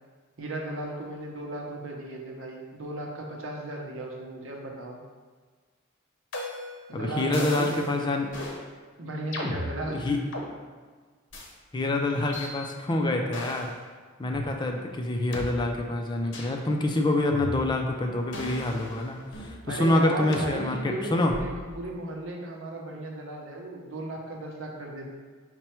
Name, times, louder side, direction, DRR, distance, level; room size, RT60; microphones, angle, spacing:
voice 1, 0.4-5.0 6.9-8.2 9.0-10.2 19.7-21.5 21.7-25.1, right 1 dB, 70° right, 0 dB, 0.8 m, -35 dB
sound 1, 6.3-6.8 7.3-7.9 8.3-8.6 9.3-10.5 11.3-11.5 12.3-12.5 13.3-13.7 14.3-14.4 15.3-15.5 16.3-16.6 17.3-17.9 18.3-19.6 20.3-20.5 21.3-21.7, left 1 dB, 65° left, 0.8 m, -36 dB
voice 2, 6.9-8.3 9.9-10.2 11.7-13.7 14.2-21.3, left 2 dB, 20° left, 2 dB, 0.4 m, -26 dB
5.5 x 2.2 x 4.4 m, 1.5 s
head